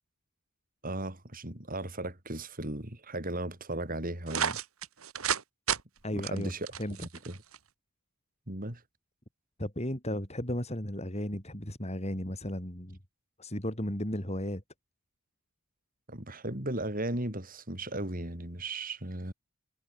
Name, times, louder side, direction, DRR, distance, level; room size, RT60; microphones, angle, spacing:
voice 1, 0.8-4.6 6.1-6.7 7.3-7.4 8.5-8.8 16.1-19.3, right 1 dB, 40° right, 4.7 m, -36 dB
sound 1, 4.3-5.4 5.7-5.8 6.2-7.6, right 8 dB, 80° right, 2.6 m, -31 dB
voice 2, 6.0-6.5 6.8-7.0 9.6-13.0 13.4-14.6, equal, 30° left, 6.8 m, -34 dB
head